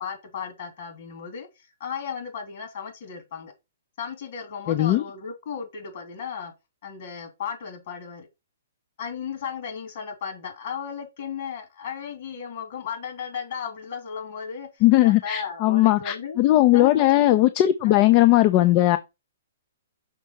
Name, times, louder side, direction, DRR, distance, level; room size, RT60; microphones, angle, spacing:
voice 1, 0.0-1.5 1.8-3.5 4.0-6.5 6.8-8.3 9.0-16.4 16.7-17.1 17.8-18.0, left 6 dB, 55° left, 2.9 m, -35 dB
voice 2, 4.7-5.0 14.8-19.0, left 15 dB, 35° left, 0.5 m, -18 dB
5.9 x 4.3 x 4.5 m
hypercardioid pair, 130°, 0 cm